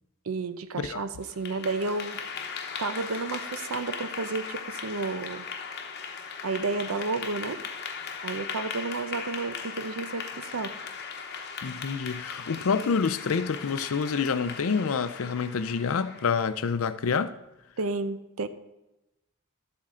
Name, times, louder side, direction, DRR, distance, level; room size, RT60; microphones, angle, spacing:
voice 1, 0.3-2.2 2.8-5.5 6.4-7.6 8.2-10.7 17.8-18.5, right 3 dB, 75° right, 0.6 m, -31 dB
Clapping / Applause, 1.2-16.5, left 6 dB, 50° left, 0.9 m, -38 dB
voice 2, 11.6-17.3, left 5 dB, 65° left, 0.5 m, -27 dB
12.0 x 7.4 x 3.8 m
head